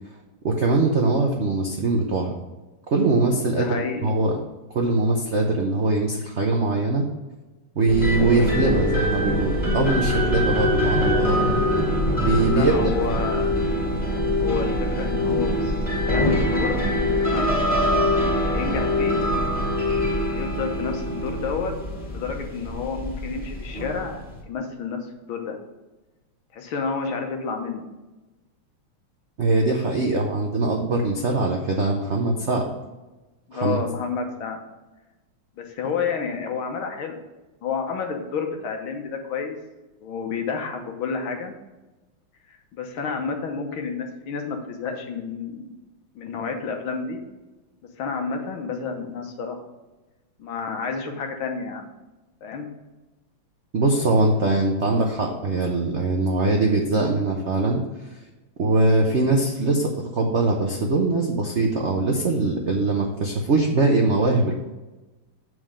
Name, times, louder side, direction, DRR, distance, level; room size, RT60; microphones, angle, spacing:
voice 1, 0.4-2.3 2.9-3.8 4.0-4.4 4.7-7.1 7.7-11.4 12.2-12.7 13.1-13.2 29.4-32.7 33.5-33.8 53.7-57.8 58.6-64.5, right 2 dB, 65° right, 1 dB, 0.6 m, -22 dB
voice 2, 3.5-4.2 12.5-13.6 14.3-15.8 16.0-16.8 17.2-17.5 18.4-19.2 20.3-21.7 22.1-25.6 26.5-27.9 33.5-34.6 35.6-37.1 37.6-39.6 40.0-41.5 42.5-45.8 46.2-47.2 48.0-49.6 50.4-51.9 52.4-52.7, left 5 dB, 75° left, 4 dB, 1.8 m, -30 dB
sound 1, 7.9-24.4, left 1 dB, 5° left, 1.6 m, -24 dB
7.4 x 4.8 x 5.0 m, 1.1 s
omnidirectional pair, 2.4 m